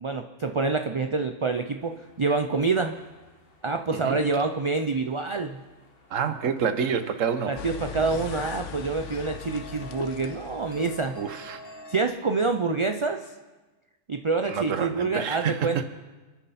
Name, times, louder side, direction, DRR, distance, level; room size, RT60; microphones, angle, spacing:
voice 1, 0.0-3.0 3.6-5.6 7.5-11.1 11.9-13.2 14.1-15.8, right 4 dB, 35° right, 6 dB, 0.5 m, -27 dB
sound 1, 1.8-12.1, left 1 dB, 45° left, 1.7 m, -49 dB
voice 2, 6.1-7.5 11.1-11.6 14.5-15.8, right 7 dB, 75° right, 9 dB, 1.4 m, -28 dB
sound 2, 7.6-11.4, left 8 dB, 70° left, 1.1 m, -39 dB
29.0 x 10.0 x 4.2 m, 1.2 s
omnidirectional pair, 1.4 m